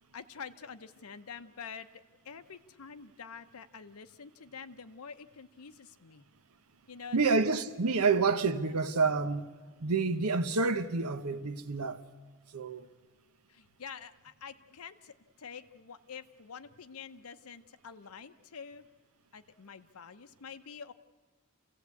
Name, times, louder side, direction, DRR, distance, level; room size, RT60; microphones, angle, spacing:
voice 1, 0.1-1.9 2.2-6.3 6.9-7.5 8.4-8.7 13.5-18.8 19.3-20.9, left 6 dB, 85° left, 0.8 m, -47 dB
voice 2, 7.1-9.5 9.8-12.0 12.5-12.9, right 4 dB, 90° right, 0.9 m, -28 dB
27.5 x 16.5 x 8.3 m
head